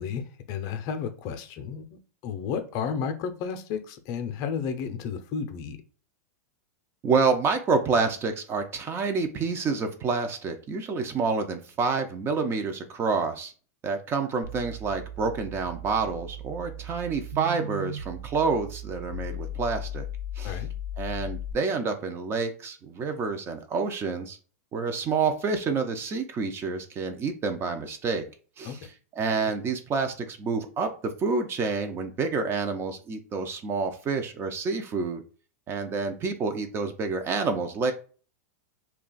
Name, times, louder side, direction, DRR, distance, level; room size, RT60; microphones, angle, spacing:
voice 1, 0.0-5.8 20.4-20.7 28.6-28.8, left 6 dB, 45° left, 8 dB, 0.5 m, -32 dB
voice 2, 7.0-13.5 13.8-20.1 20.4-20.6 21.0-24.4 24.7-28.2 28.6-35.2 35.7-37.9, right 4 dB, 25° right, 7 dB, 0.5 m, -28 dB
sound 1, 14.4-21.5, left 1 dB, 85° right, 0.7 m, -37 dB
2.4 x 2.2 x 3.8 m, 0.39 s
hypercardioid pair, 125°, 9 cm